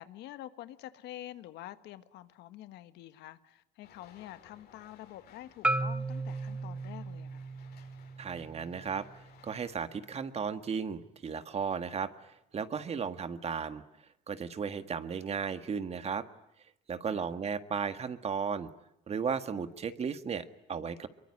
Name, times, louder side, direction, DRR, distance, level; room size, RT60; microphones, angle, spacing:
voice 1, 0.0-7.5 17.1-17.3, left 14 dB, 85° left, 1.5 m, -47 dB
sound 1, 3.8-9.9, left 8 dB, 70° left, 6.1 m, -60 dB
Marimba xylophone, 5.6-9.8, right 2 dB, 5° right, 1.3 m, -36 dB
voice 2, 8.2-13.8 14.3-16.3 16.9-18.7 19.1-21.1, right 6 dB, 40° right, 1.8 m, -35 dB
24.0 x 23.0 x 9.9 m
cardioid pair, 110°, 17 cm